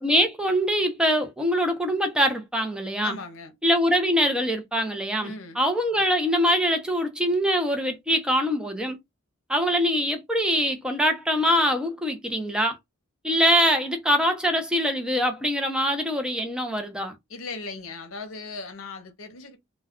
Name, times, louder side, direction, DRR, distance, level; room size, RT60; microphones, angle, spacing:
voice 1, 0.0-3.1 3.6-9.0 9.5-12.8 13.2-17.2, equal, 5° right, 0.5 m, -23 dB
voice 2, 3.0-3.5 5.2-5.6 17.3-19.6, left 3 dB, 70° left, 0.7 m, -37 dB
2.2 x 2.2 x 3.5 m
head